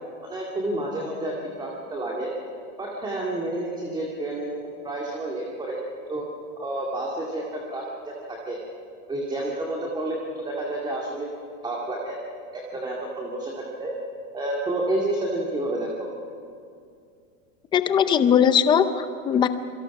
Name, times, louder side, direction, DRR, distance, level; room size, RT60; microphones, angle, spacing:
voice 1, 0.2-2.3 2.8-6.2 6.6-8.6 9.1-11.3 11.6-12.2 12.5-13.9 14.3-16.1, right 1 dB, 10° right, -2 dB, 2.2 m, -30 dB
voice 2, 17.7-19.5, left 8 dB, 10° left, 11 dB, 0.5 m, -19 dB
27.0 x 23.5 x 6.0 m, 2.4 s
supercardioid pair, 160°, 40 cm